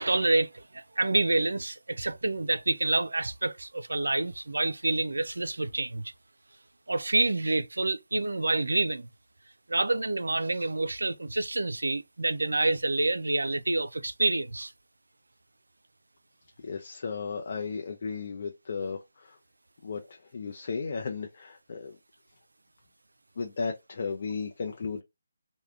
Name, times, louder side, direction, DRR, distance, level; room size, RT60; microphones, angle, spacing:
voice 1, 0.0-6.1 6.9-9.1 9.7-14.7, right 2 dB, 85° right, 0.3 m, -28 dB
voice 2, 16.6-19.4 19.8-22.0 23.4-25.0, left 5 dB, 50° left, 0.5 m, -35 dB
3.5 x 2.1 x 2.4 m
figure-of-eight pair, 155°, 0 cm